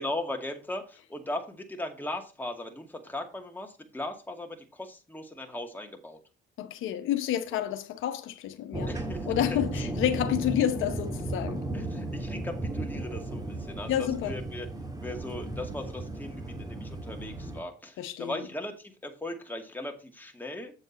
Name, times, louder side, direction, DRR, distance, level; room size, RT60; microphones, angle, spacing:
voice 1, 0.0-6.2 7.5-7.6 8.9-9.3 11.7-14.7 15.0-20.7, left 1 dB, 10° left, 2.2 m, -38 dB
voice 2, 6.6-8.9 9.3-11.6 13.9-14.4 18.0-18.4, left 11 dB, 90° left, 0.9 m, -29 dB
sound 1, 8.7-17.6, right 2 dB, 20° right, 1.9 m, -35 dB
8.0 x 7.2 x 4.2 m
cardioid pair, 90°, 20 cm